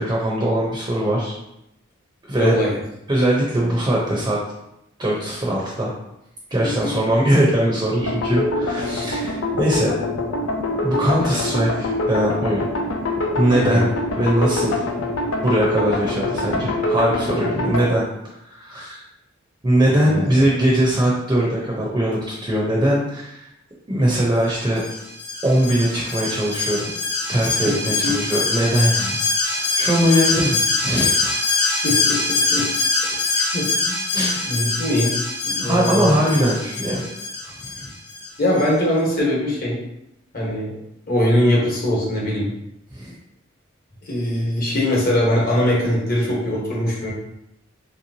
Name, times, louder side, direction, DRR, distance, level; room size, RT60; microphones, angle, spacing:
voice 1, 0.0-1.3 2.3-2.6 3.1-4.4 5.0-5.9 6.5-9.9 10.8-12.7 13.4-13.9 14.2-14.8 15.4-19.0 19.6-23.5 23.9-24.9 25.4-26.9 27.3-29.2 29.5-31.3 34.1-34.4 35.6-37.1 37.4-37.9 42.9-43.1, right 1 dB, 20° right, -4 dB, 0.6 m, -21 dB
voice 2, 2.4-2.7 6.8-6.9 13.5-13.9 19.8-20.2 28.0-28.1 31.8-32.6 33.5-33.9 34.5-35.2 35.4-36.2 38.4-39.8 40.3-40.8 41.1-42.5 44.1-47.1, left 1 dB, 45° left, -4 dB, 1.1 m, -21 dB
sound 1, 8.0-17.9, left 2 dB, 85° left, 0.5 m, -24 dB
Alarm, 24.8-38.2 38.6-38.7, left 3 dB, 30° left, 0.8 m, -23 dB
3.1 x 2.9 x 2.7 m, 0.84 s
head